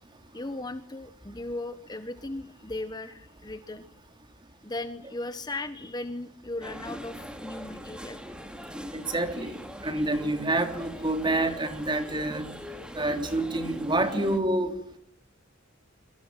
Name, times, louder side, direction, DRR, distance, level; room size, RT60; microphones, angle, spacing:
voice 1, 0.3-3.9 4.6-8.2, left 2 dB, 20° left, 10 dB, 1.2 m, -37 dB
sound 1, 6.6-14.4, equal, 5° right, 2.7 m, -41 dB
voice 2, 8.9-12.5 12.9-15.0, right 2 dB, 25° right, 6 dB, 3.3 m, -28 dB
27.0 x 23.5 x 7.6 m, 0.70 s
head